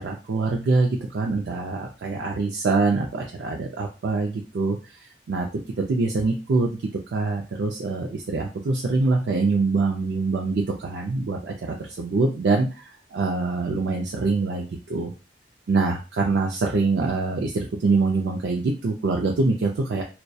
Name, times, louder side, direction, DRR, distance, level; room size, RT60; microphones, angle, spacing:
voice 1, 0.0-4.8 5.3-5.5 5.8-6.8 7.1-15.1 15.7-20.0, right 3 dB, 70° right, 0 dB, 0.4 m, -24 dB
2.2 x 2.1 x 2.6 m, 0.32 s
head